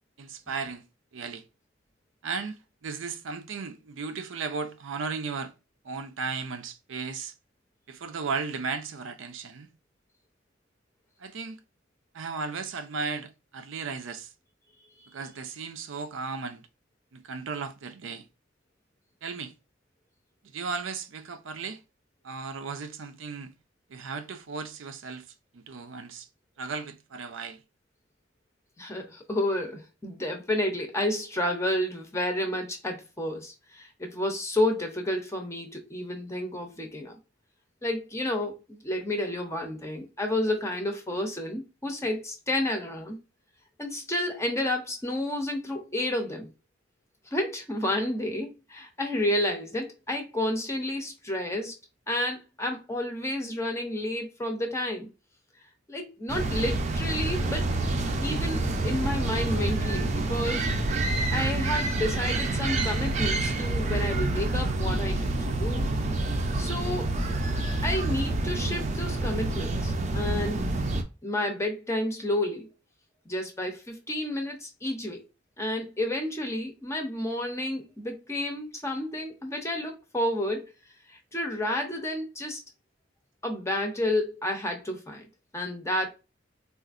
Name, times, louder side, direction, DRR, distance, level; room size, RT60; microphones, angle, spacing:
voice 1, 0.2-0.8 1.1-1.4 2.2-5.5 5.8-7.3 7.9-9.7 11.2-11.6 12.1-14.3 15.1-16.7 17.1-18.2 19.2-19.5 20.5-21.8 22.2-23.5 23.9-25.3 25.5-26.3 26.6-27.6, right 5 dB, 90° right, 0.5 m, -35 dB
voice 2, 28.8-37.2 37.8-43.2 43.8-46.5 47.3-51.7 52.1-55.1 55.9-57.7 58.2-60.7 61.3-65.9 66.5-67.1 67.8-70.7 71.2-72.7 73.3-75.2 75.6-80.7 81.1-82.6 83.4-85.3 85.5-86.1, left 1 dB, 15° left, 0.6 m, -30 dB
sound 1, 56.3-71.0, right 2 dB, 35° right, 0.5 m, -27 dB
3.8 x 2.4 x 2.4 m
head